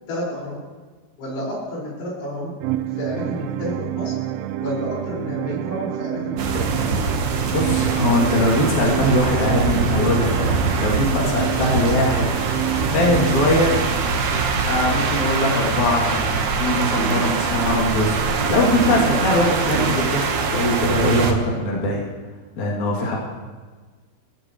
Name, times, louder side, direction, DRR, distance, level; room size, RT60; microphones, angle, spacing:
voice 1, 0.1-0.6 1.2-2.5 3.0-4.1 4.6-6.4 6.9-7.0, equal, 80° left, -5 dB, 8.0 m, -29 dB
sound 1, 2.6-14.6, right 12 dB, 85° right, 3.0 m, -28 dB
sound 2, 6.4-21.3, right 4 dB, 65° right, 1.9 m, -23 dB
voice 2, 7.5-13.8 14.7-22.0 22.6-23.2, left 1 dB, 45° left, -4 dB, 3.8 m, -21 dB
23.0 x 16.5 x 3.2 m, 1.4 s
omnidirectional pair, 5.4 m